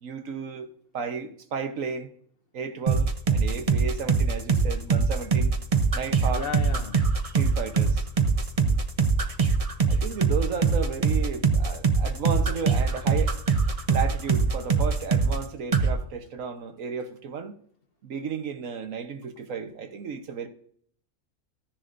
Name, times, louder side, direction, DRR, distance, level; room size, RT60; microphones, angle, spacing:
voice 1, 0.0-2.1 2.5-5.5 5.9-6.5 7.2-8.0 9.9-13.4 13.9-17.5 18.0-20.5, right 6 dB, 75° right, 1.3 m, -33 dB
sound 1, 2.9-15.4 15.7-15.9, right 5 dB, 30° right, 0.7 m, -22 dB
voice 2, 6.3-7.0 8.6-8.8, left 6 dB, 55° left, 0.8 m, -35 dB
14.0 x 10.0 x 2.5 m
omnidirectional pair, 1.4 m